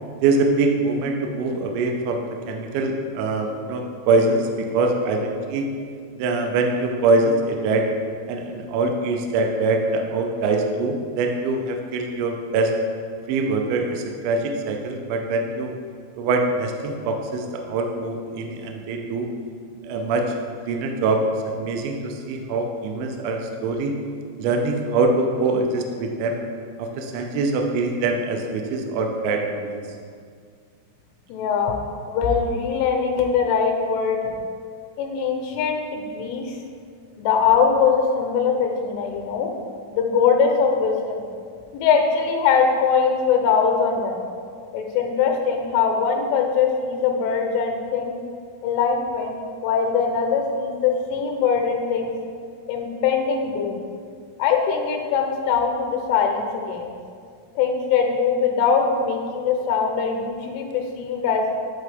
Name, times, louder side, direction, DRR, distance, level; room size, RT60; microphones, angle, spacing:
voice 1, 0.2-5.6 6.2-7.9 8.3-12.7 13.3-15.7 16.2-19.3 19.8-20.2 20.7-23.9 24.4-26.4 26.8-29.8, right 3 dB, 80° right, 3 dB, 2.8 m, -23 dB
voice 2, 31.3-31.8 32.1-34.2 35.0-36.6 37.2-39.5 39.9-41.2 41.7-44.2 44.7-48.2 48.6-52.1 52.7-53.8 54.4-56.9 57.6-61.4, left 6 dB, 85° left, 2 dB, 3.0 m, -22 dB
11.0 x 3.9 x 3.4 m, 2.2 s
omnidirectional pair, 5.6 m